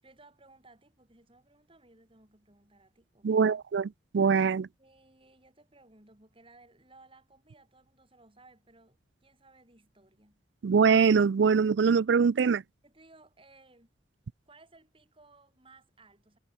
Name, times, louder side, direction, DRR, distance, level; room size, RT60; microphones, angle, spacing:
voice 1, 0.0-3.6 4.8-10.4 12.8-13.9 14.5-16.4, right 2 dB, 30° right, 6.4 m, -59 dB
voice 2, 3.2-3.9 4.1-4.7 10.6-12.6, right 6 dB, 70° right, 0.4 m, -23 dB
head